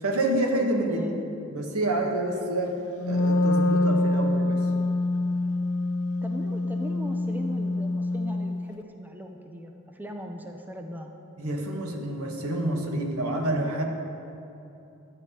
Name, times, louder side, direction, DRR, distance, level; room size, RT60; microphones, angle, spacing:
voice 1, 0.0-1.0 1.5-2.8 3.0-4.6 11.4-13.8, right 1 dB, 75° right, 2 dB, 1.5 m, -28 dB
voice 2, 0.9-1.2 6.2-11.1, equal, 10° right, 3 dB, 0.6 m, -39 dB
Wind instrument woodwind instrument, 3.0-8.7, left 2 dB, 70° left, 0.6 m, -25 dB
12.0 x 5.9 x 9.2 m, 2.8 s
head